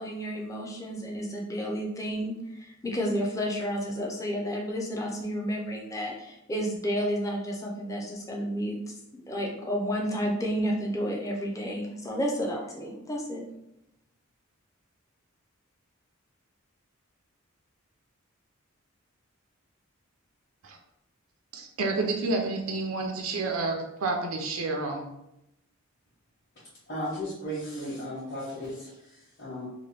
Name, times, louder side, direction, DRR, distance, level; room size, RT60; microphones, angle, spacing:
voice 1, 0.0-8.8 9.1-13.4, equal, 15° left, -1 dB, 0.4 m, -31 dB
voice 2, 21.5-25.1, right 3 dB, 75° right, 3 dB, 0.5 m, -29 dB
voice 3, 26.9-29.7, equal, 50° left, -11 dB, 1.1 m, -35 dB
2.9 x 2.2 x 3.2 m, 0.85 s
head